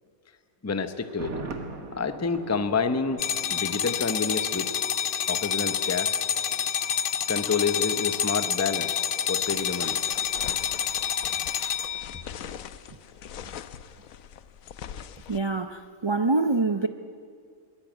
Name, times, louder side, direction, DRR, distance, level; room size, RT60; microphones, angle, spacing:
voice 1, 0.6-1.3 1.9-4.7 5.3-6.2 7.3-9.0 9.3-10.0 10.4-10.5, left 5 dB, 15° left, 10 dB, 0.7 m, -28 dB
Thunder, 1.0-4.9 5.2-5.3, right 3 dB, 85° right, 2.2 m, -41 dB
sound 1, 3.2-12.2, left 8 dB, 50° left, 0.7 m, -28 dB
sound 2, 9.4-15.4, left 9 dB, 80° left, 1.2 m, -42 dB
voice 2, 15.3-16.9, right 3 dB, 45° right, 9 dB, 0.3 m, -25 dB
21.5 x 17.5 x 9.1 m, 2.2 s
omnidirectional pair, 1.4 m